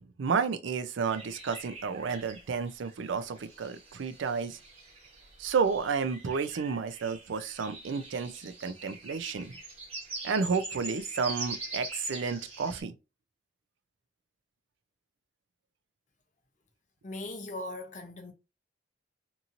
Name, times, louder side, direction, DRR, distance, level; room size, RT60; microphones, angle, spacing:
voice 1, 0.0-4.6 5.4-9.5 10.2-12.9, right 5 dB, 85° right, 0.4 m, -31 dB
sound 1, 1.1-12.8, right 3 dB, 30° right, 1.1 m, -43 dB
voice 2, 17.0-18.3, left 2 dB, 40° left, 0.6 m, -39 dB
2.9 x 2.6 x 2.5 m
head